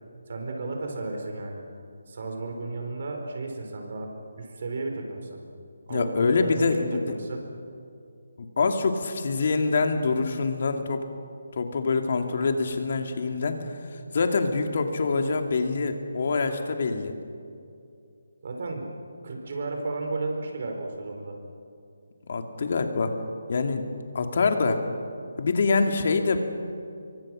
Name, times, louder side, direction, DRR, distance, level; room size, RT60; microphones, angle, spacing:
voice 1, 0.3-1.6 2.1-4.1 4.4-5.4 5.9-7.5 8.6-8.7 18.4-18.9 19.2-21.4, right 3 dB, 45° right, 3 dB, 4.6 m, -33 dB
voice 2, 5.9-7.1 8.4-11.0 11.5-17.1 22.3-23.2 23.5-23.8 24.1-24.8 25.4-26.4, left 4 dB, 45° left, 5 dB, 2.5 m, -25 dB
26.5 x 24.0 x 6.4 m, 2.5 s
hypercardioid pair, 170°, 0 cm